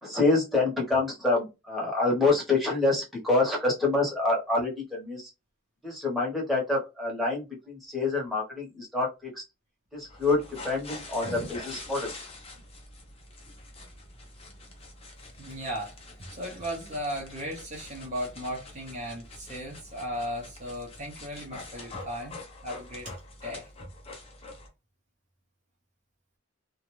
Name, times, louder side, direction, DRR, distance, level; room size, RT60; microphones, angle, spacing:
voice 1, 0.0-5.3 5.8-9.4 9.9-12.1, left 3 dB, ahead, 0.9 m, -27 dB
sound 1, 10.0-24.7, left 2 dB, 30° left, 0.7 m, -45 dB
voice 2, 15.4-15.9 16.3-22.4 22.6-23.1 23.4-23.7, equal, 35° right, 0.6 m, -36 dB
2.5 x 2.2 x 3.0 m
head